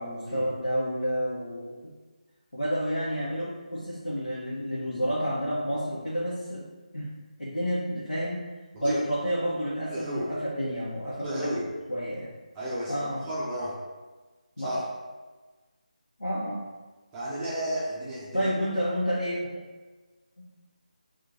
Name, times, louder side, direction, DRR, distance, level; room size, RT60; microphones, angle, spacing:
voice 1, 0.0-1.9 2.5-6.7 6.9-7.1 7.4-8.4 8.8-11.5 11.9-12.3 12.9-13.2 14.6-14.8 16.2-16.6 18.3-19.6, equal, 85° left, -8 dB, 0.9 m, -30 dB
voice 2, 9.9-10.3 11.2-11.7 12.5-13.8 14.6-14.8 17.1-18.5, right 1 dB, 10° right, -8 dB, 0.5 m, -32 dB
4.5 x 2.4 x 2.6 m, 1.3 s
figure-of-eight pair, 160°, 4 cm